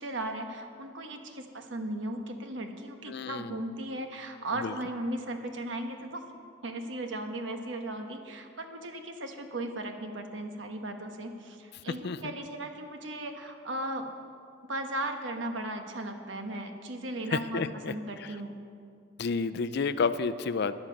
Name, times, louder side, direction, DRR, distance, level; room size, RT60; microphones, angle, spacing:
voice 1, 0.0-6.2 6.6-14.1 14.7-18.5, right 1 dB, 65° right, 5 dB, 1.2 m, -36 dB
voice 2, 3.1-3.6 4.6-4.7 12.0-12.3 17.3-17.9 18.2-18.3 19.2-20.7, left 5 dB, 55° left, 12 dB, 0.4 m, -30 dB
13.5 x 11.5 x 5.3 m, 2.4 s
head